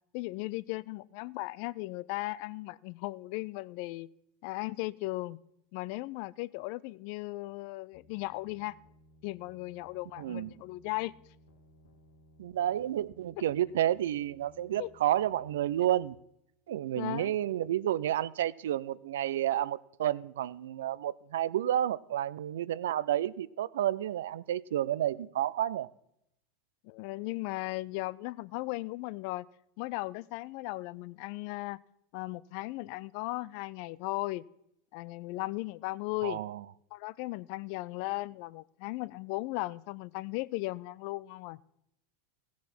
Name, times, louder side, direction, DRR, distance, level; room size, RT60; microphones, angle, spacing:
voice 1, 0.1-4.1 4.4-5.4 5.7-8.8 9.2-11.1 14.8-14.9 17.0-17.3 26.8-29.5 29.8-31.8 32.1-34.4 34.9-36.4 36.9-41.6, left 20 dB, 60° left, 0.4 m, -37 dB
sound 1, 7.9-16.0, equal, 85° left, 2.0 m, -61 dB
voice 2, 10.2-10.5 12.4-16.2 16.7-25.9 36.2-36.6, right 12 dB, 75° right, 0.4 m, -30 dB
15.5 x 7.2 x 6.1 m
hypercardioid pair, 85°, 0 cm